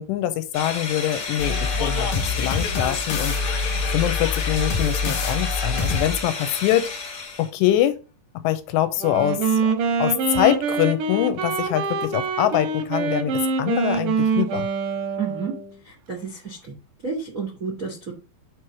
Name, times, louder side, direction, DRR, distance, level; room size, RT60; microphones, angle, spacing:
voice 1, 0.0-3.4 3.9-6.9 7.4-8.0 8.4-9.4 10.0-14.7, left 12 dB, 85° left, 2.8 m, -24 dB
sound 1, 0.5-7.5, left 4 dB, 45° left, 1.3 m, -32 dB
sound 2, 1.4-6.3, left 4 dB, 65° left, 2.8 m, -25 dB
Wind instrument woodwind instrument, 9.0-15.7, right 4 dB, 70° right, 1.9 m, -25 dB
voice 2, 15.2-15.5 15.8-16.7 17.0-18.1, right 5 dB, 90° right, 0.7 m, -31 dB
7.1 x 3.1 x 6.0 m
omnidirectional pair, 5.0 m